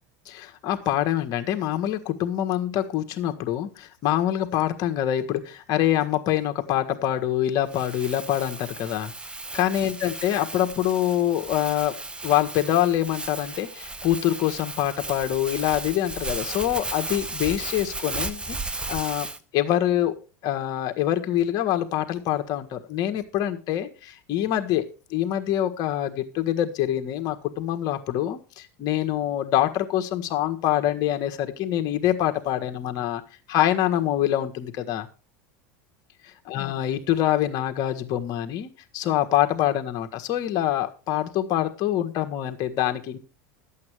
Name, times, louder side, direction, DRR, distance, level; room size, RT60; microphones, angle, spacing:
voice 1, 0.2-9.1 9.5-12.0 12.2-19.3 19.5-20.1 20.4-24.8 25.1-33.2 33.5-35.1 36.2-43.2, left 12 dB, 50° left, 6 dB, 1.5 m, -25 dB
Crumpling crinkling, 7.7-19.4, right 2 dB, 10° right, 0.9 m, -35 dB
12.0 x 8.5 x 4.8 m, 0.34 s
supercardioid pair, 115°, 9 cm